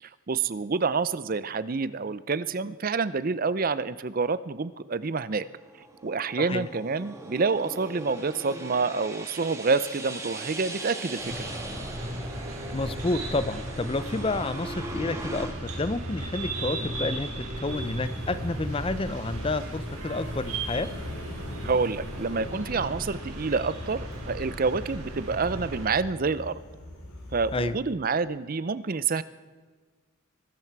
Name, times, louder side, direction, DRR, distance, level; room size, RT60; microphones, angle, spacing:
voice 1, 0.0-5.5 6.0-11.3 16.8-16.9 21.6-26.6 27.3-29.2, right 4 dB, 40° right, 16 dB, 0.5 m, -28 dB
sound 1, 5.4-15.5, right 2 dB, 15° right, 1.8 m, -40 dB
sound 2, 11.2-25.9, right 1 dB, 90° right, 4.5 m, -36 dB
voice 2, 12.7-20.9 27.5-27.8, left 2 dB, 25° left, 14 dB, 0.5 m, -30 dB
sound 3, 17.7-27.7, left 1 dB, 80° left, 6.8 m, -41 dB
23.0 x 13.0 x 4.7 m, 1.4 s
head